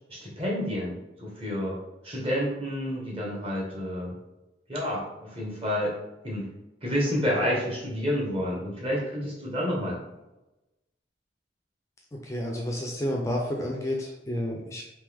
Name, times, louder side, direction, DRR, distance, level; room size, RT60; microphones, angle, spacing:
voice 1, 0.1-1.8 2.0-4.2 4.7-6.0 6.2-6.5 6.8-10.0, equal, 35° right, -3 dB, 1.1 m, -29 dB
voice 2, 12.1-14.8, left 1 dB, 15° left, 0 dB, 0.4 m, -30 dB
3.4 x 3.0 x 3.4 m, 0.99 s
head